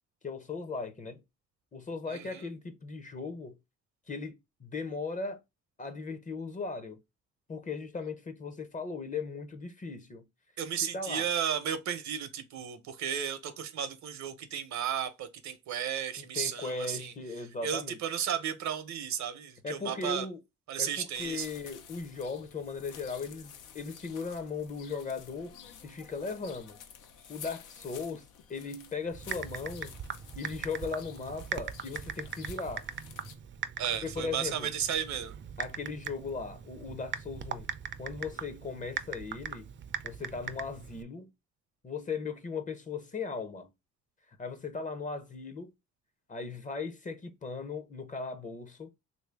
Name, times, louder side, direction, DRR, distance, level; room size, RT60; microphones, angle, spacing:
voice 1, 0.2-1.2 1.7-3.6 4.1-5.4 5.8-7.0 7.5-10.2 10.9-11.2 16.2-18.0 19.6-20.4 20.8-25.5 25.8-26.8 27.3-30.0 30.4-32.9 34.0-34.7 35.6-37.7 38.0-39.7 40.0-41.3 41.8-43.7 44.4-45.7 46.3-48.9, left 4 dB, 25° left, 0.6 m, -38 dB
voice 2, 2.1-2.4 10.6-17.1 17.6-20.3 20.7-21.5 33.8-35.3, right 9 dB, 65° right, 0.7 m, -34 dB
sound 1, 21.1-33.4, left 8 dB, 90° left, 0.7 m, -51 dB
Typing, 29.1-41.0, right 8 dB, 40° right, 0.5 m, -40 dB
3.2 x 2.7 x 3.3 m
cardioid pair, 90°, 30 cm